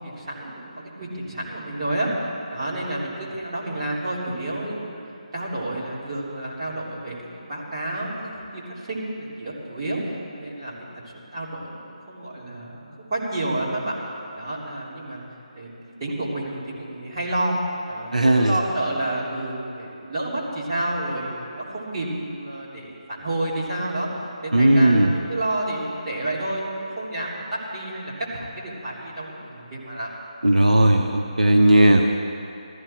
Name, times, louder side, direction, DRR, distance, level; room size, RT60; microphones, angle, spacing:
voice 1, 0.0-2.1 2.5-5.0 5.3-10.0 10.3-11.0 11.3-13.9 14.3-15.2 15.6-15.7 16.0-17.6 17.9-24.1 24.4-27.4 27.7-30.1, right 1 dB, 35° right, -7 dB, 3.4 m, -30 dB
voice 2, 18.1-18.5 24.5-25.1 30.4-32.0, right 1 dB, 85° right, 2 dB, 0.9 m, -16 dB
15.5 x 14.0 x 4.5 m, 2.7 s
figure-of-eight pair, 160°, 4 cm